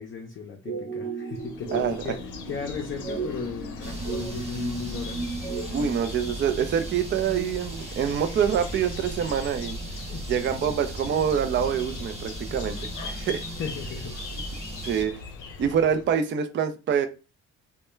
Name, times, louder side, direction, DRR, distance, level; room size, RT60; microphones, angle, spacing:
voice 1, 0.0-2.2 2.5-5.3 10.1-10.2 13.6-14.7, left 5 dB, 40° left, 0 dB, 0.5 m, -36 dB
sound 1, 0.7-6.0, right 4 dB, 85° right, 0.9 m, -34 dB
sound 2, 1.3-16.2, left 4 dB, 85° left, 0.6 m, -40 dB
voice 2, 1.7-2.1 5.7-9.8 10.3-13.5 14.8-15.2 15.6-17.1, right 8 dB, 40° right, 8 dB, 0.4 m, -26 dB
sound 3, 3.8-15.0, right 2 dB, 20° right, 0.8 m, -38 dB
2.2 x 2.1 x 3.0 m, 0.30 s
cardioid pair, 90°, 30 cm